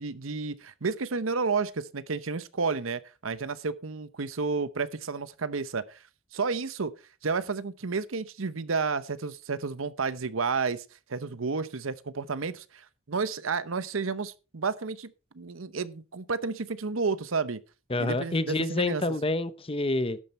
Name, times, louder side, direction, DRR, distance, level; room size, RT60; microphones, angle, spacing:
voice 1, 0.0-6.0 6.3-6.9 7.2-10.8 11.1-17.6 18.0-19.0, right 4 dB, 85° right, 0.9 m, -31 dB
voice 2, 17.9-20.2, left 2 dB, 25° left, 0.9 m, -28 dB
12.0 x 8.9 x 4.3 m
head